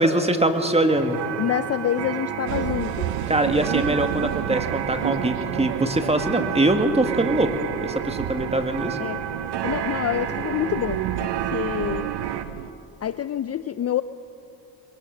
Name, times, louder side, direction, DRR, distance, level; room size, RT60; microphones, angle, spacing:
voice 1, 0.0-1.2 3.3-7.5 7.8-9.0, right 1 dB, 15° right, 6 dB, 2.0 m, -22 dB
sound 1, 0.9-12.4, right 9 dB, 65° right, 1.2 m, -31 dB
voice 2, 1.4-3.2 9.0-9.2 9.6-12.1 13.0-14.0, left 10 dB, 35° left, 13 dB, 0.5 m, -27 dB
sound 2, 2.5-12.7, right 12 dB, 85° right, 0.8 m, -31 dB
22.0 x 20.0 x 6.5 m, 2.9 s
supercardioid pair, 80°, 44 cm